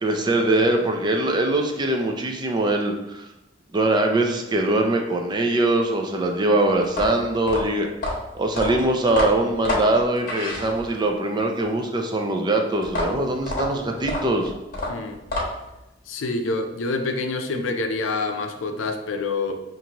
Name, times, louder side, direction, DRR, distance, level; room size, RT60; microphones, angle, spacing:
voice 1, 0.0-3.2 3.7-7.9 8.3-14.5, right 2 dB, 25° right, 3 dB, 0.4 m, -22 dB
sound 1, 6.8-11.1 12.8-15.8, left 1 dB, 45° left, 1.0 m, -28 dB
voice 2, 16.1-19.6, left 3 dB, 90° left, 5 dB, 0.5 m, -27 dB
5.7 x 2.6 x 2.9 m, 0.93 s
head